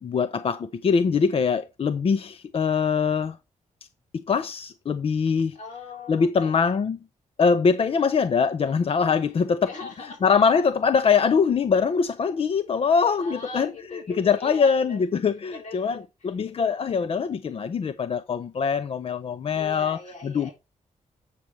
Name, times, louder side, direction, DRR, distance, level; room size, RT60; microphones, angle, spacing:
voice 1, 0.0-3.4 4.1-5.6 6.1-7.0 7.4-9.7 10.0-20.5, left 6 dB, 45° left, 0.5 m, -23 dB
voice 2, 5.5-6.6 9.4-10.2 13.1-15.0 15.5-15.9 16.2-16.3 19.5-20.5, left 4 dB, 70° left, 5.0 m, -40 dB
8.4 x 6.3 x 4.5 m
wide cardioid pair, 135°, 13 cm